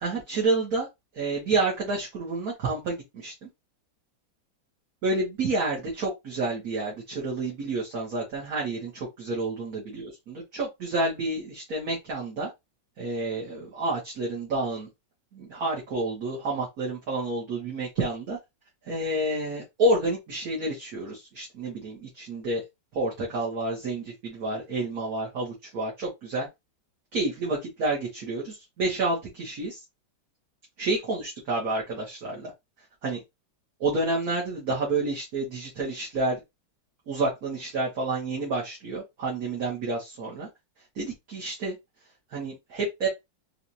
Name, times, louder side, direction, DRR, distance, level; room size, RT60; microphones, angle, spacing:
voice 1, 0.0-0.9 1.1-3.5 5.0-12.5 13.0-14.9 15.3-18.4 18.9-22.6 22.9-26.5 27.1-29.8 30.8-32.5 33.0-33.2 33.8-36.4 37.1-40.5 40.9-41.8 42.3-43.1, right 2 dB, 55° right, -4 dB, 1.5 m, -29 dB
4.5 x 2.4 x 2.6 m, 0.20 s
omnidirectional pair, 2.1 m